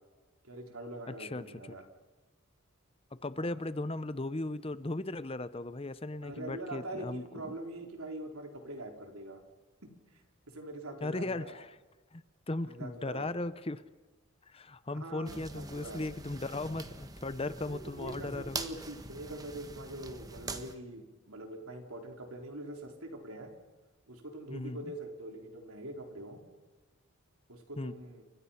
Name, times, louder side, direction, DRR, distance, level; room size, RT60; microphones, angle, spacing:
voice 1, 0.4-1.8 3.4-3.5 6.2-9.4 9.8-10.2 10.5-11.6 12.6-13.3 15.0-16.1 17.7-23.5 24.1-26.4 27.5-28.2, right 1 dB, 85° right, 3 dB, 4.2 m, -44 dB
voice 2, 1.1-1.7 3.1-7.6 11.0-11.8 12.1-13.8 14.5-18.6 24.5-24.8 27.8-27.9, left 2 dB, 25° left, 14 dB, 0.7 m, -37 dB
sound 1, 15.3-20.7, right 3 dB, 15° right, 1.3 m, -44 dB
29.5 x 25.0 x 5.8 m, 1.2 s
head